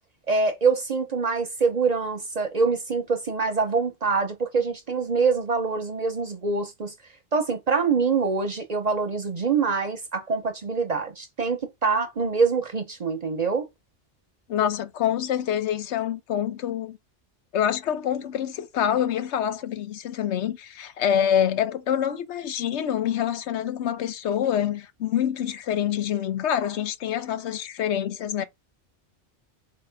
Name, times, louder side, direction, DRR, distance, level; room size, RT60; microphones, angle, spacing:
voice 1, 0.3-6.9 7.3-13.7, right 4 dB, 45° right, 0.6 m, -25 dB
voice 2, 14.5-17.0 17.5-28.4, left 9 dB, 75° left, 0.9 m, -26 dB
4.3 x 2.9 x 3.4 m
omnidirectional pair, 1.2 m